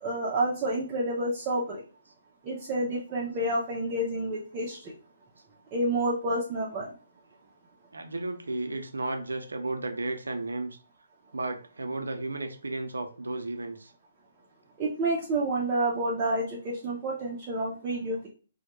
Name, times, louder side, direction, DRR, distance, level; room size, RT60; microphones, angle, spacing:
voice 1, 0.0-1.8 2.4-4.9 5.7-6.9 14.8-18.3, right 1 dB, 25° right, -5 dB, 0.5 m, -29 dB
voice 2, 7.9-10.8 11.3-13.9, right 2 dB, 80° right, 5 dB, 0.5 m, -34 dB
2.1 x 2.1 x 2.9 m, 0.38 s
figure-of-eight pair, 135°, 0 cm